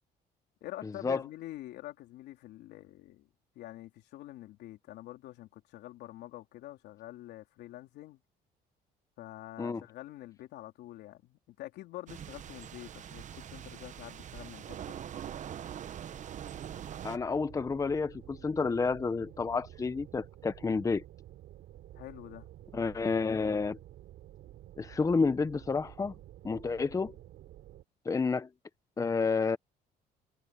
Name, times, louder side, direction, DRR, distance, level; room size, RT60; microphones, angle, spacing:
voice 1, 0.6-3.3 3.6-8.2 9.2-15.0 22.0-22.5, left 15 dB, 80° left, 3.6 m, -46 dB
sound 1, 12.1-17.2, right 9 dB, 45° right, 0.9 m, -43 dB
sound 2, 16.4-27.8, right 13 dB, 70° right, 3.9 m, -51 dB
voice 2, 17.0-21.0 22.7-23.8 24.8-26.1 26.4-27.1 28.1-28.5 29.0-29.6, left 4 dB, 20° left, 0.8 m, -30 dB
cardioid pair, 110°, 17 cm